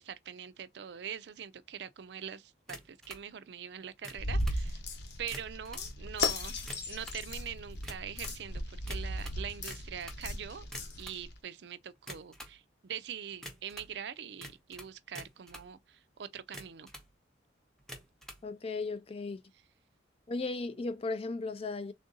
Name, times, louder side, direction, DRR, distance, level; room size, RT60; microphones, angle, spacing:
voice 1, 0.0-4.8 5.2-10.7 11.0-16.9, right 8 dB, 65° right, 0.4 m, -43 dB
sound 1, 2.7-3.3 3.9-4.6 5.2-5.9 6.5-7.2 7.8-8.4 8.9-10.2 10.6-11.2 12.0-12.6 13.4-13.9 14.4-15.7 16.4-17.1 17.8-18.4, equal, ahead, 0.7 m, -47 dB
sound 2, 4.1-11.3, left 2 dB, 65° left, 0.9 m, -36 dB
voice 2, 18.4-19.4 20.3-21.9, left 3 dB, 30° left, 0.4 m, -36 dB
3.6 x 2.6 x 3.8 m
head